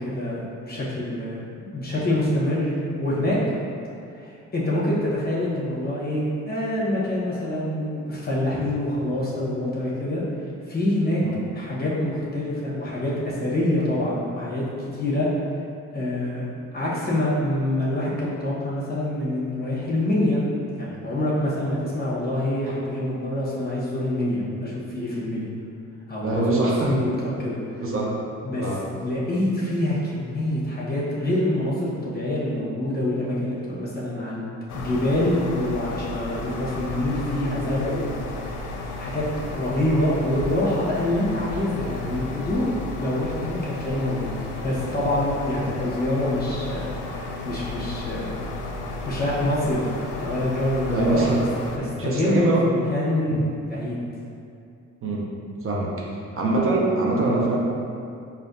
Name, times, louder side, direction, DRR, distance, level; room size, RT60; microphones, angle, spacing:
voice 1, 0.0-1.4 1.7-3.4 4.1-10.2 10.7-11.2 11.5-15.3 15.9-16.5 16.7-20.4 20.8-25.5 26.1-27.8 28.4-28.7 29.0-38.1 38.5-38.7 39.0-39.2 39.5-42.7 43.0-44.3 44.6-48.4 49.0-51.3 51.8-54.0, left 1 dB, 30° left, -7 dB, 1.1 m, -26 dB
voice 2, 26.2-27.0 27.8-28.1 28.6-28.8 50.9-51.5 52.0-52.7 55.0-55.3 55.6-55.9 56.4-57.6, right 2 dB, 45° right, -4 dB, 0.7 m, -23 dB
sound 1, 34.7-51.8, left 2 dB, 80° left, 0.5 m, -33 dB
5.1 x 2.7 x 2.6 m, 2.4 s
cardioid pair, 90°, 30 cm